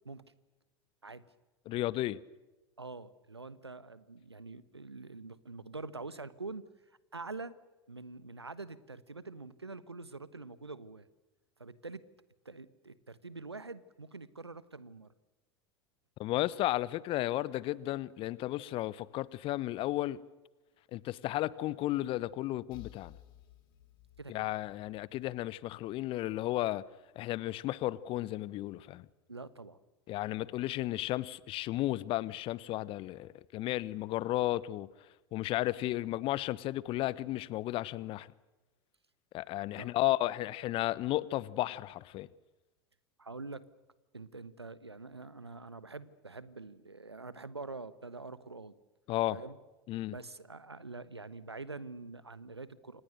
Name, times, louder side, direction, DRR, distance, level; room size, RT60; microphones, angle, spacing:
voice 1, 1.7-2.2 16.2-20.2 20.9-23.1 24.3-26.8 27.2-29.0 30.1-34.9 35.3-38.3 39.3-42.3 49.1-49.4 49.9-50.1, left 16 dB, 40° left, 1.0 m, -33 dB
voice 2, 2.8-6.6 7.1-7.6 7.9-11.1 11.6-12.0 12.4-15.1 24.2-24.5 29.3-29.8 39.8-39.9 43.2-43.6 44.1-48.7 49.3-49.6 50.1-53.0, right 3 dB, 90° right, 1.2 m, -45 dB
sound 1, 22.7-26.4, left 13 dB, 60° left, 3.6 m, -56 dB
29.0 x 26.5 x 6.7 m
figure-of-eight pair, 80°, 13 cm